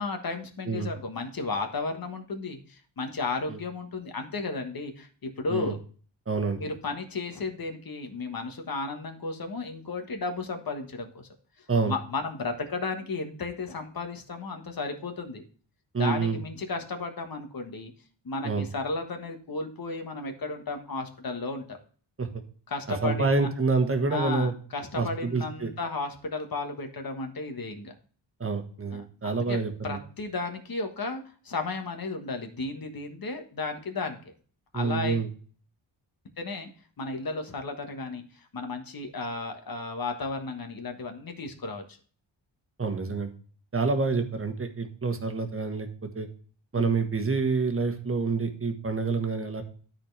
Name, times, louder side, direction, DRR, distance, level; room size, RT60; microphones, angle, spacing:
voice 1, 0.0-5.8 6.6-11.3 11.6-15.4 16.0-17.9 18.2-21.8 22.7-23.5 24.1-27.9 28.9-34.3 34.7-35.2 36.4-36.7 37.0-41.8 46.7-47.0, left 3 dB, 50° left, 5 dB, 1.4 m, -34 dB
voice 2, 6.3-6.6 11.7-11.9 15.9-16.4 18.4-18.7 22.2-22.3 22.9-24.5 25.0-25.7 28.4-30.0 34.7-35.3 42.8-43.3 43.7-45.9 46.1-46.3 46.7-49.6, right 4 dB, 30° right, 6 dB, 1.3 m, -27 dB
13.0 x 4.4 x 3.3 m, 0.43 s
wide cardioid pair, 130°, 46 cm